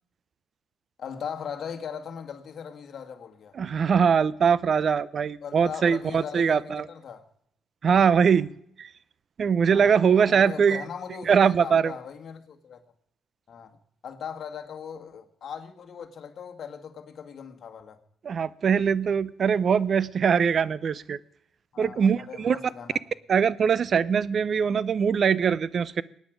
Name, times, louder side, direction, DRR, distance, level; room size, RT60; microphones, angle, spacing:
voice 1, 1.0-3.6 5.4-7.2 8.2-8.4 9.7-12.8 13.5-13.8 14.0-18.0 21.7-23.0, left 7 dB, 60° left, 1.9 m, -39 dB
voice 2, 3.5-6.9 7.8-8.5 8.8-8.9 9.4-10.8 11.3-12.0 18.2-21.2 21.8-22.6 23.3-26.0, right 6 dB, 50° right, 0.6 m, -22 dB
23.0 x 9.4 x 5.2 m
cardioid pair, 90°, 0 cm